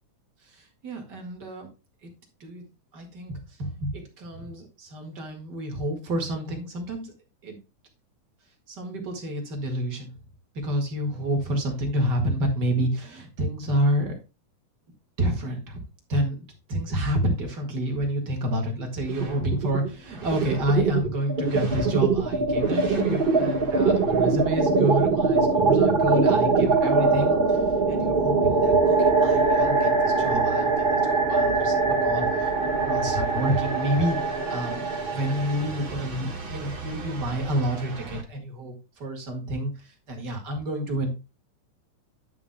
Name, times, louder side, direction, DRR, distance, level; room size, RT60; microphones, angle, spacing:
voice 1, 0.6-1.7 2.0-2.1 2.4-2.6 2.9-7.1 7.4-7.6 8.7-10.1 10.6-14.1 15.2-15.8 16.1-27.6 27.9-41.1, right 1 dB, 40° right, 2 dB, 2.1 m, -29 dB
sound 1, 19.1-19.9 20.2-38.2, right 4 dB, 70° right, 0.5 m, -23 dB
9.6 x 9.6 x 2.2 m, 0.27 s
omnidirectional pair, 3.6 m